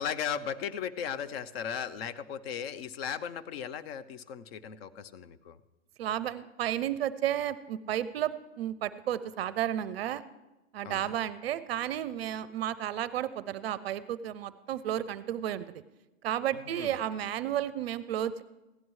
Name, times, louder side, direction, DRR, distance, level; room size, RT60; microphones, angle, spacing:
voice 1, 0.0-5.6 10.8-11.2 16.5-17.0, left 8 dB, 50° left, 15 dB, 0.7 m, -37 dB
voice 2, 6.0-10.2 10.7-15.8 16.2-18.4, right 11 dB, 50° right, 16 dB, 0.5 m, -32 dB
16.0 x 11.0 x 3.1 m, 1.0 s
hypercardioid pair, 135°, 39 cm